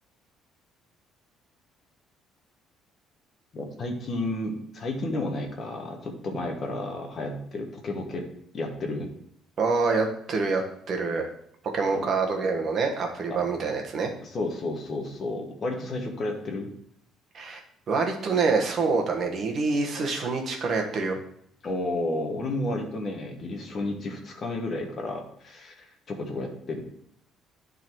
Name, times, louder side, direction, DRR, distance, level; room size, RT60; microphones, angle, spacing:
voice 1, 3.5-8.3 8.5-9.1 11.9-12.1 13.3-13.4 14.2-16.7 21.6-26.8, left 2 dB, 30° left, 3 dB, 1.3 m, -32 dB
voice 2, 9.6-10.6 10.9-11.3 11.7-14.1 17.3-17.6 17.9-21.2, right 4 dB, 35° right, 2 dB, 1.3 m, -26 dB
10.5 x 4.0 x 4.6 m, 0.69 s
cardioid pair, 180°, 0 cm